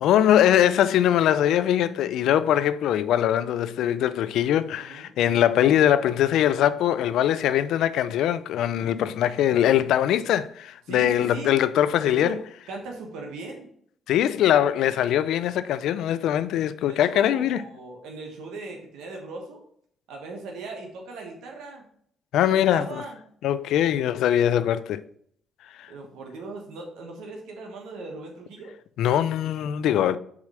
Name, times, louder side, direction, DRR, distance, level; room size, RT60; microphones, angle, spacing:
voice 1, 0.0-12.4 14.1-17.6 22.3-23.0 23.4-25.0 25.8-25.9 29.0-30.2, left 11 dB, 85° left, 0.3 m, -22 dB
voice 2, 4.8-5.1 10.9-11.5 12.0-12.4 12.7-13.7 16.9-19.6 20.1-21.8 22.4-23.2 25.9-28.7, right 3 dB, 90° right, 1.2 m, -38 dB
4.8 x 4.1 x 4.9 m
cardioid pair, 90°, 0 cm